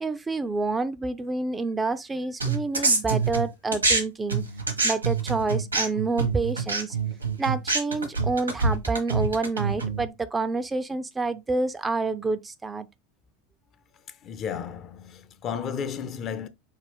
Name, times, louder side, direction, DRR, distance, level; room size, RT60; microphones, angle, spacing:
voice 1, 0.0-4.4 4.8-7.0 7.4-12.9, right 3 dB, 15° right, 0.3 m, -28 dB
sound 1, 2.4-4.0 4.3-10.0, right 4 dB, 85° right, 1.0 m, -25 dB
voice 2, 14.1-16.5, left 7 dB, 35° left, 0.5 m, -33 dB
5.4 x 2.3 x 3.5 m
figure-of-eight pair, 80°, 0 cm